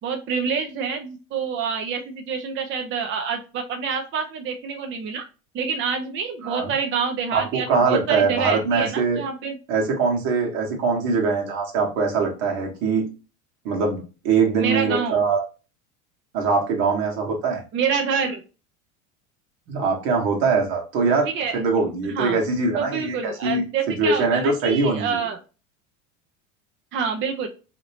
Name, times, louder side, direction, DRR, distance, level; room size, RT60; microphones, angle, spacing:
voice 1, 0.0-5.2 5.5-9.6 14.6-15.2 17.7-18.4 21.3-21.6 22.0-22.4 22.8-25.4 26.9-27.5, right 6 dB, 30° right, 5 dB, 0.5 m, -27 dB
voice 2, 7.3-9.2 9.7-13.1 13.6-15.4 16.3-17.6 19.7-21.3 21.5-25.2, right 4 dB, 65° right, 1 dB, 1.3 m, -22 dB
2.9 x 2.8 x 2.8 m, 0.32 s
hypercardioid pair, 75°, 41 cm